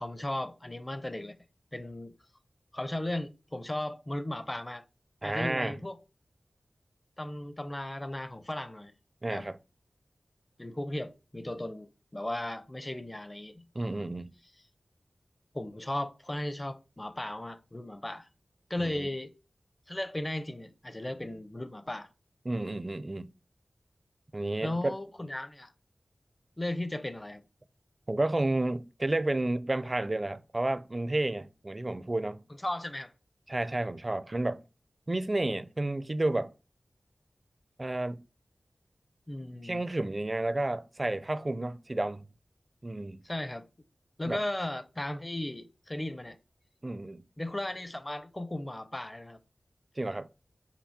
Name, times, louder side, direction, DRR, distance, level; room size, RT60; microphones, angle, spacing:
voice 1, 0.0-1.4 1.7-2.1 2.7-4.8 5.2-6.0 7.2-8.9 9.3-9.5 10.6-13.7 15.5-18.3 18.7-19.3 19.9-22.1 24.6-25.7 26.6-27.4 32.6-33.1 39.3-39.9 43.2-43.7 44.2-46.4 47.4-49.4, left 1 dB, 25° left, 0.7 m, -36 dB
voice 2, 5.2-5.8 9.2-9.6 13.7-14.3 18.8-19.1 22.5-23.3 24.3-25.0 28.1-32.4 33.5-34.6 35.1-36.5 37.8-38.2 39.6-42.3 42.8-43.2 44.3-44.4 46.8-47.2 50.0-50.3, right 2 dB, 35° right, 0.5 m, -31 dB
6.0 x 5.0 x 4.2 m
wide cardioid pair, 60°, 0 cm